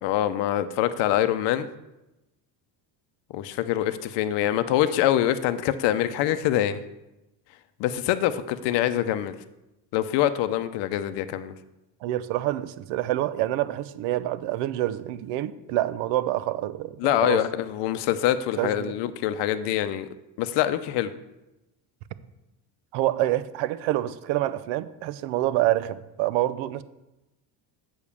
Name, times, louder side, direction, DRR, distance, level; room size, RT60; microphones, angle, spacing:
voice 1, 0.0-1.7 3.3-6.8 7.8-9.4 9.9-11.5 17.0-20.1 20.4-21.1, left 12 dB, 70° left, 10 dB, 0.7 m, -25 dB
voice 2, 12.0-17.4 18.6-18.9 22.9-26.8, right 14 dB, 80° right, 15 dB, 0.7 m, -27 dB
8.1 x 5.0 x 6.9 m, 0.96 s
cardioid pair, 140°, 44 cm